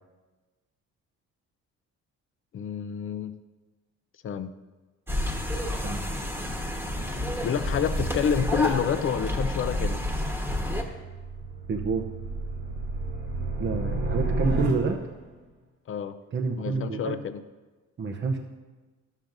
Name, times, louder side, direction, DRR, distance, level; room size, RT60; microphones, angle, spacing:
voice 1, 2.5-3.3 4.2-4.5 7.4-10.0 15.9-16.2 16.6-17.4, left 7 dB, 45° left, 12 dB, 0.5 m, -28 dB
sound 1, 5.1-10.8, left 1 dB, 10° right, 1.2 m, -29 dB
sound 2, 10.7-15.3, right 2 dB, 80° right, 2.0 m, -31 dB
voice 2, 11.7-12.0 13.6-15.0 16.3-17.2 18.0-18.4, right 4 dB, 35° right, 4 dB, 0.7 m, -28 dB
11.5 x 7.3 x 2.6 m, 1.2 s
cardioid pair, 90°, 30 cm